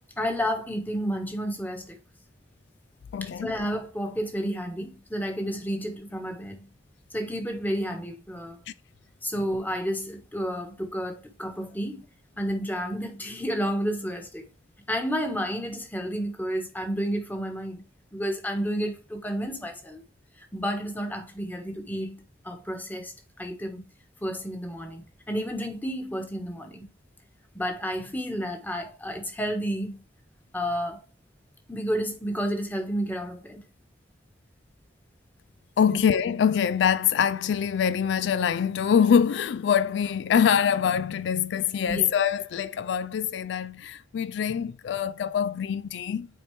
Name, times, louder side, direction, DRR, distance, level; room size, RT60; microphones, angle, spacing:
voice 1, 0.2-2.0 3.2-6.7 7.1-8.6 9.2-12.0 12.4-14.4 14.9-17.8 18.1-20.0 20.5-22.1 22.4-23.1 23.4-23.8 24.2-26.8 27.5-30.0 30.5-31.0 31.7-33.6 35.9-36.0 41.9-42.1, equal, 10° left, 1.3 m, -31 dB
voice 2, 3.1-3.5 35.8-46.3, left 7 dB, 75° left, 0.3 m, -24 dB
9.0 x 4.4 x 3.3 m
head